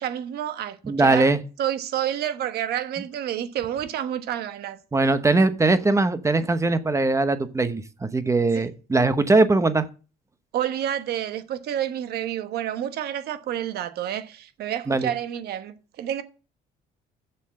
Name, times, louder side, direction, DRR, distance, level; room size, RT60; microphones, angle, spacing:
voice 1, 0.0-1.3 1.6-4.8 8.5-8.7 10.5-16.2, right 10 dB, 70° right, 1.2 m, -29 dB
voice 2, 0.9-1.4 4.9-9.9 14.9-15.1, right 3 dB, 15° right, 0.9 m, -21 dB
7.1 x 6.9 x 7.5 m
cardioid pair, 110°, 17 cm